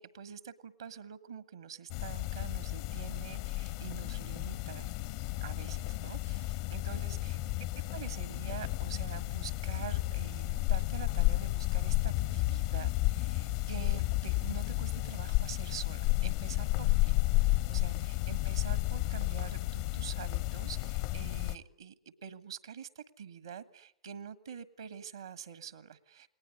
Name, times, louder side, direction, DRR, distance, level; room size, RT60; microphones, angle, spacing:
voice 1, 0.0-4.9 5.4-7.4 7.9-26.3, right 8 dB, 70° right, 14 dB, 1.5 m, -46 dB
sound 1, 1.9-21.6, left 19 dB, 50° left, 1.0 m, -32 dB
29.0 x 20.0 x 9.7 m, 0.71 s
figure-of-eight pair, 95°, 3 cm